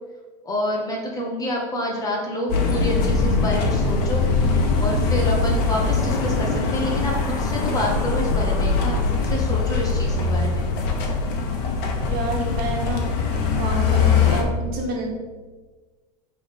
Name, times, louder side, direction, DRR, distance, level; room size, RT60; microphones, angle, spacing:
voice 1, 0.4-4.2 4.5-10.7, equal, 15° left, -1 dB, 1.2 m, -28 dB
sound 1, 2.5-14.4, left 4 dB, 50° left, 1.1 m, -22 dB
voice 2, 12.0-13.1 13.5-15.1, right 2 dB, 45° right, -1 dB, 1.6 m, -28 dB
6.1 x 3.4 x 5.2 m, 1.3 s
supercardioid pair, 130°, 21 cm